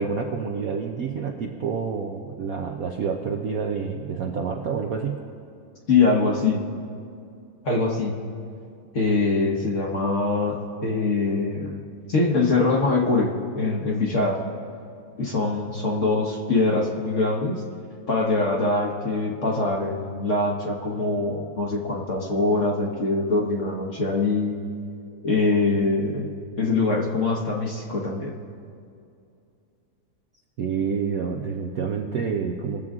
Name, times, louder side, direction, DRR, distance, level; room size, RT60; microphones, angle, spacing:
voice 1, 0.0-5.2 30.6-32.9, right 6 dB, 65° right, 1 dB, 0.9 m, -28 dB
voice 2, 5.9-6.6 7.6-8.1 8.9-11.8 12.1-14.4 15.2-17.6 18.1-24.6 25.2-28.3, left 3 dB, 45° left, -1 dB, 1.2 m, -23 dB
21.5 x 7.6 x 3.7 m, 2.5 s
omnidirectional pair, 2.3 m